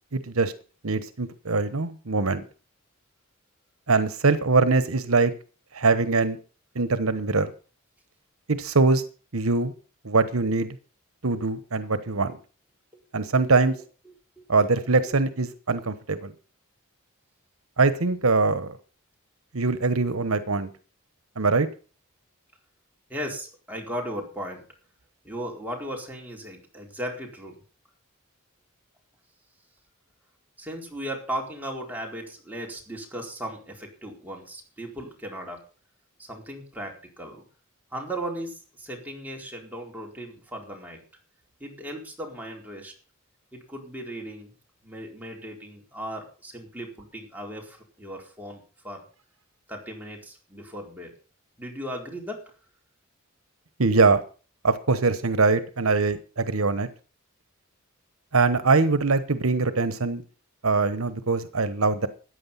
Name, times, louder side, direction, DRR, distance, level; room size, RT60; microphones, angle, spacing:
voice 1, 0.1-0.5 0.8-2.4 3.9-5.3 5.7-6.4 6.7-7.5 8.5-9.0 9.3-9.7 10.0-10.7 11.2-12.4 13.1-13.8 14.5-16.3 17.8-18.8 19.5-20.7 21.4-21.7 53.8-54.2 54.6-56.9 58.3-60.2 60.6-62.1, right 3 dB, 75° right, 12 dB, 1.1 m, -22 dB
voice 2, 23.1-24.6 25.2-27.5 30.6-35.6 36.2-37.4 37.9-41.0 41.6-42.9 43.5-44.5 44.8-49.0 49.7-51.1 51.6-52.4, right 1 dB, 10° right, -1 dB, 4.4 m, -36 dB
14.0 x 9.8 x 5.6 m, 0.37 s
head